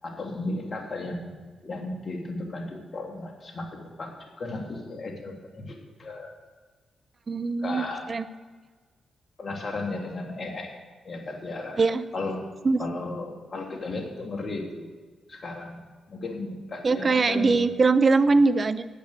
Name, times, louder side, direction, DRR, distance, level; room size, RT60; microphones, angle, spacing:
voice 1, 0.0-1.3 1.6-6.3 7.6-8.0 9.4-11.8 12.1-12.5 12.8-14.9 15.3-15.8 16.1-17.6, left 2 dB, 50° left, 2 dB, 2.5 m, -35 dB
voice 2, 7.3-7.8 8.1-8.2 11.8-12.1 12.6-12.8 16.8-18.9, right 3 dB, 45° right, 13 dB, 0.8 m, -21 dB
10.5 x 8.8 x 8.1 m, 1.4 s
supercardioid pair, 45°, 0 cm